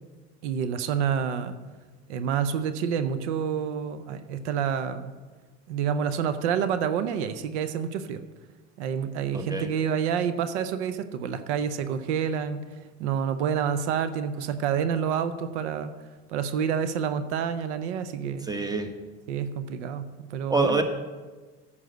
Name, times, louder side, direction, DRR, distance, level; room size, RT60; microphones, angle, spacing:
voice 1, 0.4-1.6 2.1-5.1 5.7-8.2 8.8-12.6 13.0-15.9 16.3-18.5 19.3-20.8, right 7 dB, 90° right, 12 dB, 0.7 m, -28 dB
voice 2, 9.3-9.7 18.5-18.9 20.5-20.8, right 3 dB, 10° right, 6 dB, 1.3 m, -25 dB
9.2 x 5.6 x 7.9 m, 1.3 s
supercardioid pair, 75°, 33 cm